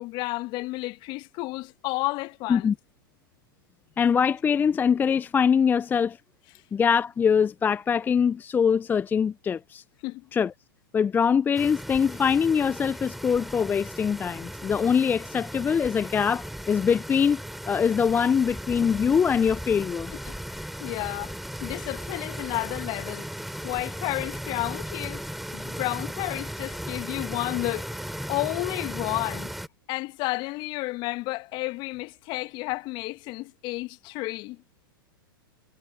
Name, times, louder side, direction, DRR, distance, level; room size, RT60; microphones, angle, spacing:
voice 1, 0.0-2.7 10.0-10.3 20.2-20.4 20.8-23.3 23.6-25.2 25.5-27.9 28.3-29.5 29.9-34.6, left 22 dB, 40° left, 1.7 m, -31 dB
voice 2, 4.0-6.2 6.7-9.8 10.3-10.5 10.9-17.4 17.7-20.1, left 7 dB, 15° left, 0.6 m, -23 dB
sound 1, 11.5-29.7, equal, ahead, 3.9 m, -37 dB
hypercardioid pair, 105°, 12 cm